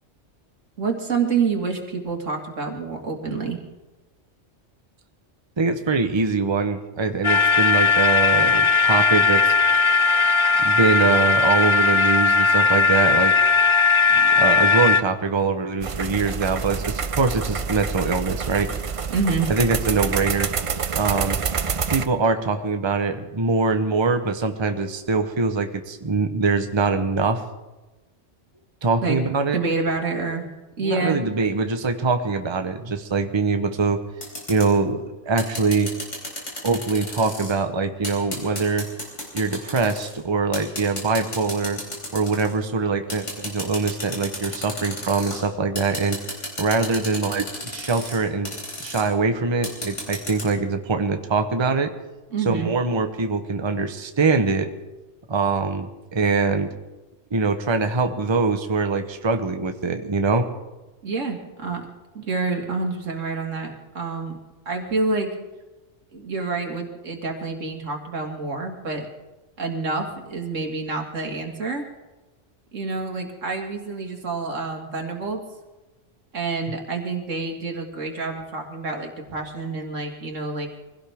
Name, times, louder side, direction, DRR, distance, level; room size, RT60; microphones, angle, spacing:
voice 1, 0.8-3.6 19.1-19.5 29.0-29.2 29.5-30.5 30.8-31.2 52.3-52.7 61.0-61.9 62.1-64.4 64.7-65.3 66.1-69.1 69.6-71.9 72.7-75.4 76.3-80.7, right 4 dB, 90° right, 3 dB, 2.3 m, -27 dB
voice 2, 5.6-9.5 10.6-13.3 14.1-18.7 19.5-20.5 20.9-21.4 21.9-27.4 28.8-29.6 30.8-34.0 34.5-35.9 36.6-38.9 39.3-41.8 42.1-46.2 46.6-47.5 47.7-48.5 48.8-51.9 52.4-54.7 55.3-56.7 57.3-60.5, right 4 dB, 25° right, 7 dB, 0.9 m, -23 dB
sound 1, 7.2-15.0, left 4 dB, 45° left, 0.3 m, -18 dB
sound 2, 15.8-22.1, right 6 dB, 50° right, 0.4 m, -27 dB
sound 3, 34.2-34.7 35.4-37.5 38.0-40.1 40.5-42.5 43.1-45.4 45.8-48.2 48.4-49.0 49.6-50.4, left 1 dB, 80° left, 4.4 m, -32 dB
24.0 x 16.5 x 3.5 m, 1.1 s
omnidirectional pair, 1.3 m